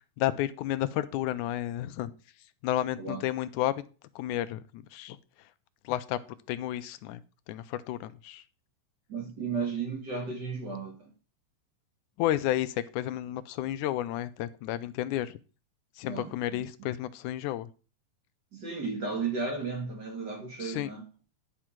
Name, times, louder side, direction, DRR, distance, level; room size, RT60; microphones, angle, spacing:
voice 1, 0.2-2.1 2.6-3.7 4.2-5.2 5.9-6.2 6.5-7.2 7.5-8.4 12.2-15.4 16.0-17.7 20.6-20.9, left 13 dB, 90° left, 2.1 m, -31 dB
voice 2, 9.1-11.1 16.0-16.6 18.5-21.0, right 4 dB, 40° right, 2.1 m, -34 dB
10.5 x 5.0 x 5.9 m
omnidirectional pair, 3.4 m